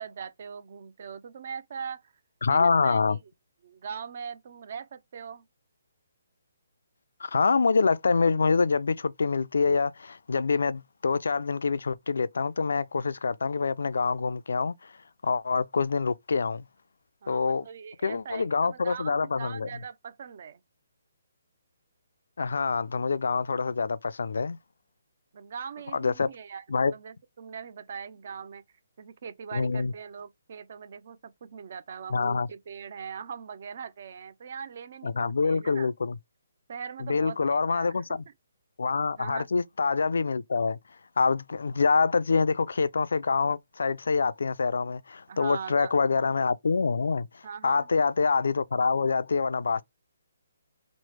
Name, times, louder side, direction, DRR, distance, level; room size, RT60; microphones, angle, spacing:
voice 1, 0.0-2.1 2.5-3.2 3.6-5.5 17.2-20.6 25.3-28.6 29.0-35.9 36.7-38.0 39.2-39.5 45.3-45.9 47.4-47.9, right 6 dB, 50° right, 0.5 m, -41 dB
voice 2, 2.4-3.2 7.2-14.9 15.2-16.6 17.3-17.6 18.0-19.7 22.4-24.6 25.9-26.3 26.7-26.9 29.5-29.9 32.1-32.5 35.0-36.2 37.0-38.2 38.8-40.8 41.2-49.8, left 4 dB, 80° left, 0.3 m, -26 dB
3.1 x 2.0 x 3.1 m
hypercardioid pair, 165°, 0 cm